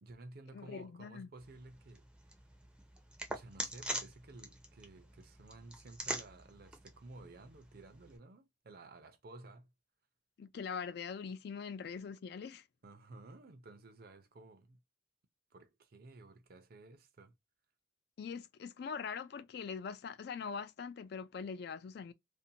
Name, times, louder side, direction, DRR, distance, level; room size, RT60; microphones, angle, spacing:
voice 1, 0.0-2.1 3.3-9.7 12.8-14.8 15.5-17.3, right 2 dB, 55° right, 0.5 m, -54 dB
voice 2, 0.5-1.3 10.4-12.7 18.2-22.1, left 6 dB, 60° left, 0.3 m, -42 dB
sound 1, 1.4-8.2, right 1 dB, 5° right, 0.5 m, -45 dB
2.6 x 2.1 x 2.7 m
head